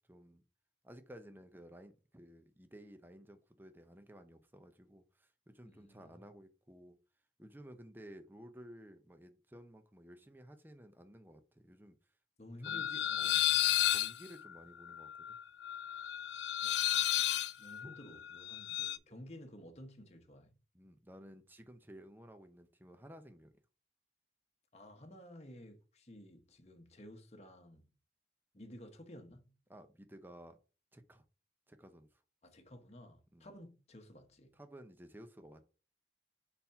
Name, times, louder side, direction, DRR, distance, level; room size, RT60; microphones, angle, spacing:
voice 1, 0.1-0.4 0.8-7.0 7.4-12.0 12.6-13.4 13.9-15.4 17.8-17.9 20.7-23.5 29.7-30.6 30.9-31.2 31.7-32.2 33.3-33.5 34.5-35.7, equal, 10° right, 0.7 m, -55 dB
voice 2, 5.6-6.2 12.4-13.7 16.6-20.6 24.7-27.9 28.5-29.6 32.4-34.6, left 1 dB, 35° left, 1.1 m, -54 dB
sound 1, 12.6-19.0, left 13 dB, 80° left, 0.4 m, -33 dB
4.3 x 4.1 x 5.6 m
head